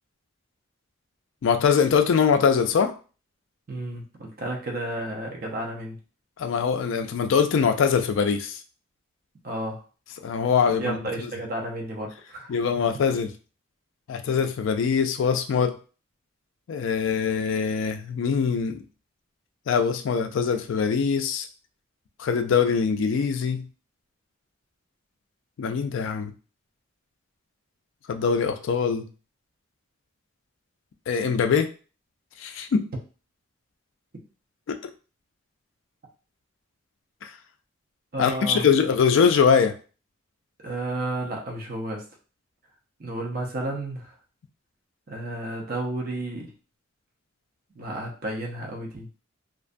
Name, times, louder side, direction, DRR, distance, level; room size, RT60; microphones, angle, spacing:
voice 1, 1.4-2.9 6.4-8.6 10.2-11.0 12.5-13.3 14.1-15.8 16.7-18.8 19.7-21.5 22.2-23.7 25.6-26.3 28.1-29.1 31.1-31.7 32.4-32.9 34.7-34.8 37.2-37.3 38.2-39.7, left 6 dB, 70° left, 7 dB, 0.3 m, -22 dB
voice 2, 3.7-6.0 9.4-9.8 10.8-12.8 38.1-38.7 40.6-42.0 43.0-44.1 45.1-46.5 47.7-49.1, right 1 dB, 45° right, 0 dB, 0.6 m, -32 dB
2.5 x 2.2 x 2.5 m, 0.36 s
head